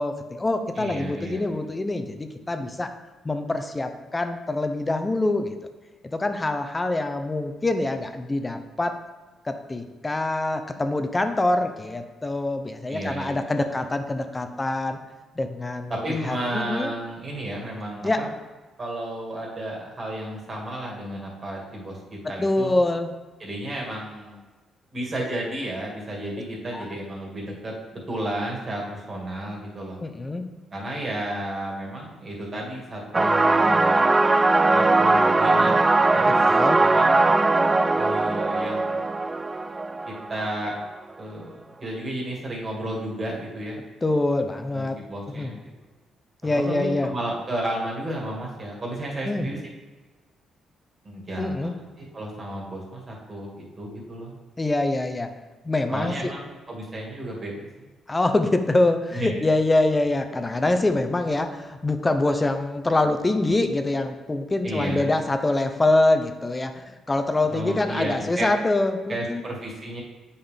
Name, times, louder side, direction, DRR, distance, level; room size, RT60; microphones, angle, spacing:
voice 1, 0.0-2.9 3.2-5.5 6.1-8.9 9.4-15.0 15.4-15.9 16.2-16.9 18.0-18.2 22.4-23.1 26.7-26.8 30.0-30.5 36.5-36.8 44.0-45.0 45.4-45.5 46.4-47.1 49.2-49.5 51.4-51.7 54.6-55.3 55.6-56.3 58.1-69.4, left 2 dB, 20° left, 7 dB, 0.6 m, -25 dB
voice 2, 0.8-1.4 12.9-13.8 15.9-18.3 18.8-22.8 23.4-24.4 24.9-30.0 30.7-34.0 34.7-35.7 36.1-36.4 36.8-37.1 37.9-38.9 40.1-40.8 41.2-43.8 44.7-45.7 46.4-49.6 51.0-51.7 52.1-54.3 55.9-57.9 59.1-59.3 64.6-65.1 67.5-68.5 69.1-70.0, right 1 dB, 35° right, -2 dB, 2.2 m, -32 dB
sound 1, 33.1-40.7, right 2 dB, 20° right, 0.3 m, -20 dB
7.9 x 5.5 x 3.5 m, 1.2 s
cardioid pair, 90°, 0 cm